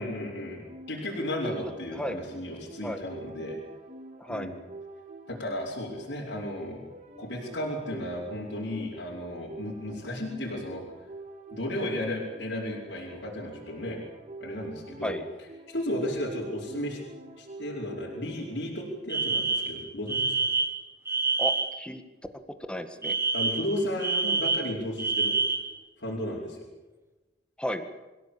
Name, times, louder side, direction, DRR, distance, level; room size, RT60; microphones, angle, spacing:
voice 1, 0.0-3.6 4.3-4.5 5.3-6.8 7.2-10.8 11.5-14.0 14.4-15.2 15.7-17.0 17.4-20.4 23.3-25.4 26.0-26.6, left 1 dB, 70° left, -5 dB, 5.1 m, -34 dB
sound 1, 0.6-18.7, right 2 dB, 40° right, 3.1 m, -47 dB
voice 2, 1.4-2.2 2.8-3.0 4.2-4.5 15.0-15.2 21.4-22.0 22.7-23.2 27.6-27.9, equal, 5° left, 7 dB, 1.8 m, -34 dB
Alarm, 19.1-21.8 23.0-25.7, right 3 dB, 15° right, 1.6 m, -27 dB
25.5 x 16.5 x 8.7 m, 1.1 s
head